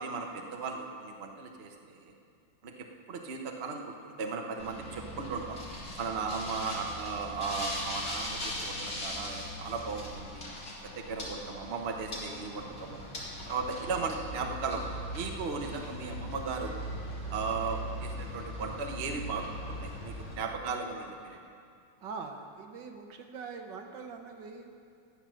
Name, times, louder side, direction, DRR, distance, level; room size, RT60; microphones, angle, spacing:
voice 1, 0.0-2.1 2.6-5.6 6.0-10.5 11.0-13.0 13.4-14.8 15.1-16.8 17.3-21.4, right 4 dB, 40° right, 2 dB, 0.9 m, -36 dB
sound 1, 4.6-20.4, equal, 45° left, 2.7 m, -40 dB
voice 2, 22.0-24.7, right 4 dB, 65° right, 4 dB, 1.5 m, -43 dB
15.0 x 8.8 x 6.3 m, 2.4 s
omnidirectional pair, 2.2 m